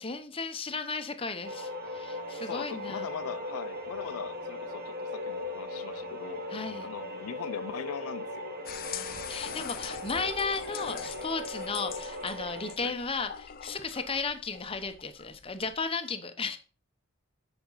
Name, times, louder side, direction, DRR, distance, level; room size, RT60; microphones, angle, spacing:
voice 1, 0.0-3.1 6.5-6.9 8.9-16.6, left 4 dB, 25° left, 0.9 m, -35 dB
sound 1, 1.4-12.8, left 1 dB, 45° right, 1.4 m, -39 dB
voice 2, 2.4-6.4 6.8-8.5 12.8-13.0, left 8 dB, 90° left, 0.4 m, -40 dB
sound 2, 8.7-15.8, left 8 dB, 45° left, 0.6 m, -43 dB
8.6 x 5.3 x 5.6 m
head